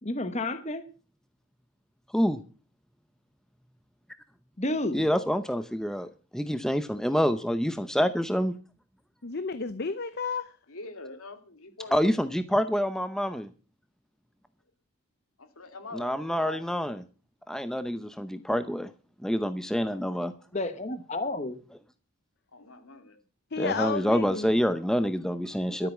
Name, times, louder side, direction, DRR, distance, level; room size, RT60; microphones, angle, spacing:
voice 1, 0.0-0.8 4.6-5.0 20.5-21.6 25.8-25.9, left 2 dB, 30° left, 10 dB, 1.1 m, -31 dB
voice 2, 4.9-8.6 11.9-13.5 15.9-17.0 17.5-18.9 19.2-20.3 23.6-25.9, equal, ahead, 11 dB, 0.7 m, -27 dB
voice 3, 9.2-10.5 23.5-24.5, left 4 dB, 45° left, 12 dB, 0.7 m, -31 dB
voice 4, 10.7-12.2 15.4-16.7 22.5-23.2 23.8-24.3, left 3 dB, 75° left, 7 dB, 2.4 m, -44 dB
13.0 x 8.5 x 7.2 m, 0.37 s
head